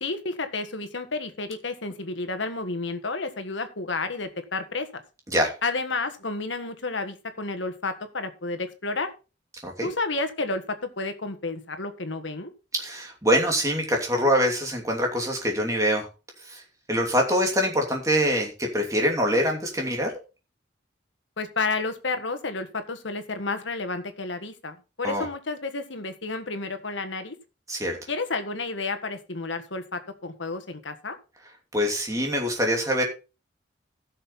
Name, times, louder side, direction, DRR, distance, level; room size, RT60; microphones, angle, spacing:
voice 1, 0.0-5.0 5.6-9.1 9.8-12.5 21.4-27.3 28.1-31.2, left 3 dB, 80° left, 8 dB, 1.6 m, -31 dB
voice 2, 12.7-16.1 16.4-16.6 16.9-20.1 25.0-25.3 27.7-28.0 31.7-33.0, equal, 15° right, 1 dB, 2.8 m, -24 dB
15.5 x 6.7 x 4.2 m, 0.32 s
head